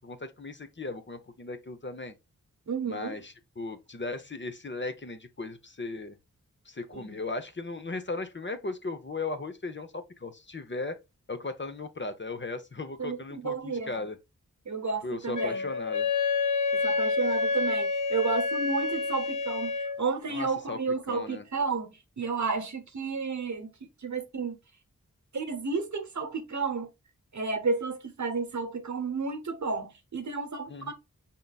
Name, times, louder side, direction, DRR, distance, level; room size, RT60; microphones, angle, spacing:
voice 1, 0.0-2.1 2.8-6.2 6.7-11.0 11.3-14.2 15.0-16.1 20.3-20.8 21.1-21.4 30.7-30.9, left 3 dB, 35° left, 0.8 m, -37 dB
voice 2, 2.7-3.1 6.9-7.2 13.0-14.1 14.6-15.7 16.7-23.7 24.0-24.6 25.3-26.9 27.3-30.9, right 4 dB, 65° right, 1.0 m, -32 dB
Wind instrument woodwind instrument, 15.3-20.0, left 4 dB, 70° left, 1.2 m, -28 dB
5.4 x 3.7 x 2.3 m
cardioid pair, 40°, 31 cm